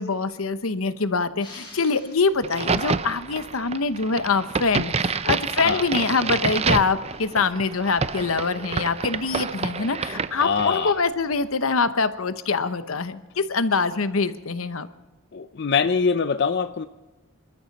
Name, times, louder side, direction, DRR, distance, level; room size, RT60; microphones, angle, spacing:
voice 1, 0.0-14.9, left 4 dB, 85° left, 12 dB, 1.0 m, -24 dB
sound 1, 1.4-2.9, left 2 dB, 25° left, 7.1 m, -46 dB
Crack, 2.4-11.0, right 5 dB, 30° right, 0.5 m, -28 dB
voice 2, 10.4-10.9 15.3-16.9, left 5 dB, 55° left, 10 dB, 0.5 m, -23 dB
26.0 x 13.0 x 4.1 m, 1.2 s
head